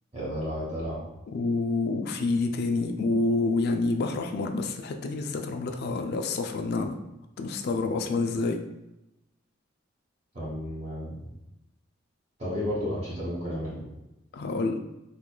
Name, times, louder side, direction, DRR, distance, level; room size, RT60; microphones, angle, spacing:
voice 1, 0.1-1.0 10.3-11.2 12.4-13.8, equal, 35° right, -9 dB, 1.0 m, -32 dB
voice 2, 1.3-7.0 7.4-8.6 14.3-14.8, left 3 dB, 50° left, 5 dB, 0.3 m, -28 dB
4.4 x 2.3 x 2.2 m, 0.94 s
head